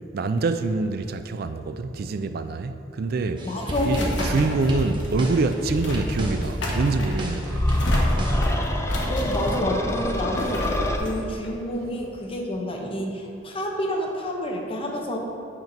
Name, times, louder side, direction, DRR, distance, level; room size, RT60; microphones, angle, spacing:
voice 1, 0.1-3.5 3.8-7.7, right 3 dB, 55° right, 0.4 m, -25 dB
sound 1, 3.1-12.4, left 1 dB, 80° left, 1.2 m, -35 dB
voice 2, 3.4-4.2 9.1-10.7 10.9-15.2, equal, 30° left, 1.0 m, -28 dB
sound 2, 3.4-8.5, equal, 25° right, 1.0 m, -30 dB
sound 3, 7.5-11.0, left 1 dB, 15° left, 0.5 m, -25 dB
7.9 x 4.6 x 5.3 m
head